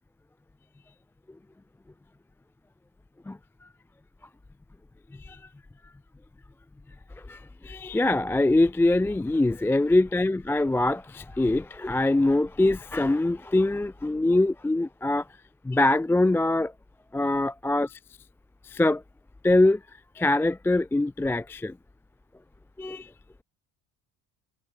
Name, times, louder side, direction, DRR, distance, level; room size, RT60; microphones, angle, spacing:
voice 1, 7.3-15.3 15.6-16.7 17.1-18.0 18.6-19.0 19.4-19.8 20.2-21.8 22.8-23.1, left 2 dB, 5° left, 0.4 m, -23 dB
supercardioid pair, 85°, 38 cm